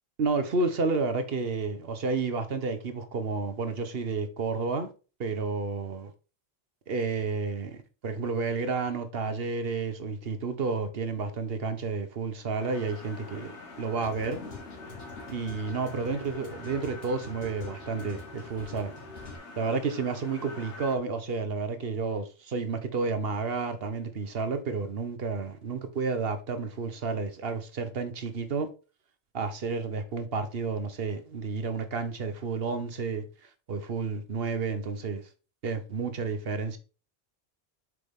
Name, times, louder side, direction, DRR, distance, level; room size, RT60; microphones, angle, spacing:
voice 1, 0.2-4.9 5.2-6.1 6.9-13.5 13.8-14.4 15.3-18.9 19.6-28.7 29.3-33.2 33.7-35.2 35.6-36.8, right 4 dB, 60° right, 1.2 m, -31 dB
sound 1, 12.6-21.0, left 3 dB, 85° left, 1.6 m, -45 dB
sound 2, 13.3-19.4, left 3 dB, 60° left, 2.1 m, -46 dB
7.9 x 4.9 x 3.6 m
omnidirectional pair, 1.1 m